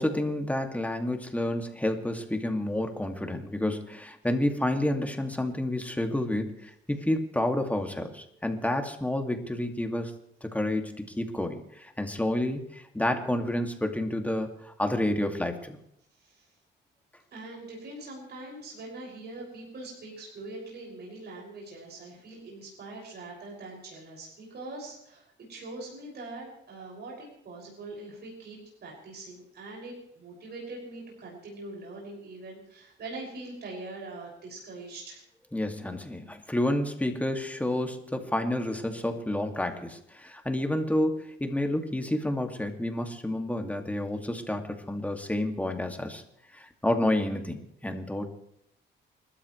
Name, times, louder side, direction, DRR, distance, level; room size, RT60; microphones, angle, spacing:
voice 1, 0.0-10.1 10.4-15.8 35.5-46.2 46.5-48.3, left 1 dB, 5° left, 4 dB, 2.2 m, -29 dB
voice 2, 16.2-16.5 17.3-35.2, right 2 dB, 55° right, -2 dB, 6.3 m, -43 dB
29.5 x 13.0 x 3.2 m, 0.76 s
cardioid pair, 90°, 20 cm